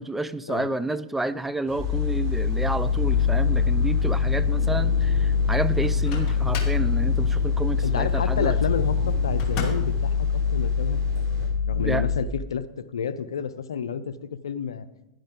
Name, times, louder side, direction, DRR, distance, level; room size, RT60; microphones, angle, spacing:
voice 1, 0.0-8.6 11.8-12.0, right 2 dB, 5° right, 14 dB, 0.4 m, -30 dB
sound 1, 1.7-11.5, right 1 dB, 65° right, 3.7 m, -36 dB
sound 2, 1.8-12.2, left 6 dB, 15° left, 1.6 m, -24 dB
Microwave oven, 5.8-6.9 9.4-10.0, left 4 dB, 45° left, 2.4 m, -35 dB
voice 2, 7.8-14.1 14.4-14.9, left 7 dB, 90° left, 14 dB, 0.6 m, -30 dB
11.0 x 10.5 x 3.7 m, 0.93 s
hypercardioid pair, 110°, 2 cm